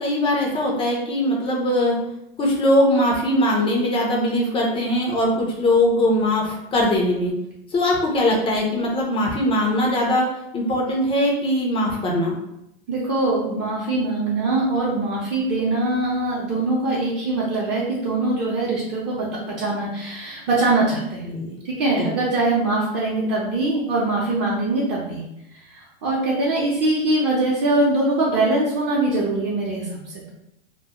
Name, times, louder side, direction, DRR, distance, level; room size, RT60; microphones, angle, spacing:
voice 1, 0.0-2.0 2.4-7.3 7.7-10.3 10.5-12.4 21.3-21.6 22.0-22.1, left 1 dB, 20° left, -1 dB, 0.4 m, -21 dB
voice 2, 12.9-21.3 21.6-25.2 25.7-30.3, right 2 dB, 40° right, -6 dB, 0.6 m, -22 dB
2.2 x 2.0 x 2.8 m, 0.83 s
supercardioid pair, 125°, 29 cm